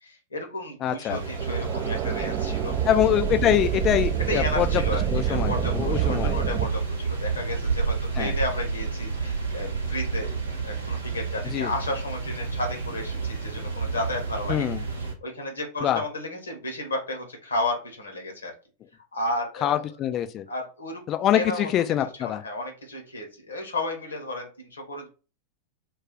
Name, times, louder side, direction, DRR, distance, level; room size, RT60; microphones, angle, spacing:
voice 1, 0.0-2.7 4.3-10.3 10.6-14.7 15.2-18.5 19.1-19.8 20.5-21.0 21.3-21.7 22.2-25.1, left 1 dB, 70° left, 0.9 m, -32 dB
voice 2, 0.8-1.2 2.9-4.8 5.1-6.4 8.2-8.3 11.5-11.7 14.5-14.8 15.8-16.0 19.6-20.5 21.1-22.4, left 11 dB, 30° left, 0.3 m, -24 dB
sound 1, 1.1-15.1, right 5 dB, 75° right, 0.8 m, -30 dB
sound 2, 1.2-6.7, right 10 dB, 35° right, 0.4 m, -28 dB
2.3 x 2.3 x 3.8 m
figure-of-eight pair, 90°, 0 cm